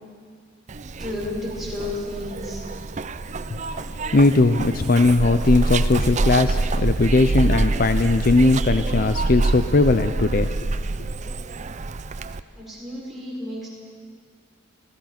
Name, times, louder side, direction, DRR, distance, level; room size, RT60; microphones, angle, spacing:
Zipper (clothing), 0.7-12.4, right 2 dB, 35° right, 0.6 m, -26 dB
voice 1, 1.0-2.6 12.5-13.7, left 1 dB, ahead, -7 dB, 6.1 m, -32 dB
voice 2, 4.1-10.5, left 3 dB, 45° left, 9 dB, 0.6 m, -19 dB
30.0 x 15.5 x 6.0 m, 2.1 s
head